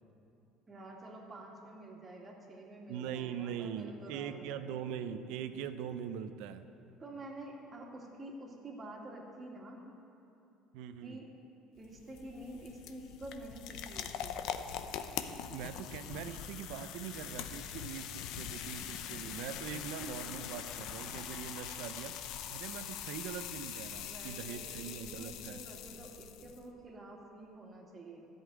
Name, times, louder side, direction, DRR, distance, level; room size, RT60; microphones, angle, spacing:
voice 1, 0.7-4.6 7.0-9.9 11.0-11.3 11.8-14.4 24.0-28.3, right 1 dB, 30° right, -1 dB, 2.2 m, -48 dB
voice 2, 2.9-6.6 10.7-11.2 15.2-22.2 22.5-25.6, right 8 dB, 80° right, 10 dB, 0.6 m, -42 dB
sound 1, 11.8-26.6, left 9 dB, 70° left, 0.6 m, -43 dB
13.0 x 5.6 x 9.2 m, 2.8 s
supercardioid pair, 105°, 0 cm